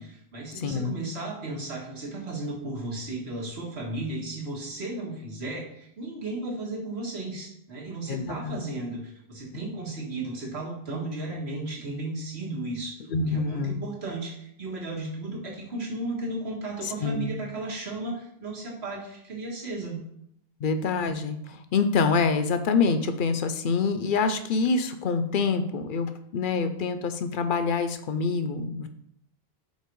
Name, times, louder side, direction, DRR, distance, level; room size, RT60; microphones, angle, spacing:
voice 1, 0.0-12.9 13.3-20.0, right 2 dB, 80° right, -2 dB, 1.8 m, -34 dB
voice 2, 0.6-0.9 8.1-8.6 13.1-13.8 16.8-17.3 20.6-28.9, left 4 dB, 60° left, 8 dB, 0.7 m, -26 dB
5.7 x 4.0 x 4.5 m, 0.73 s
omnidirectional pair, 1.1 m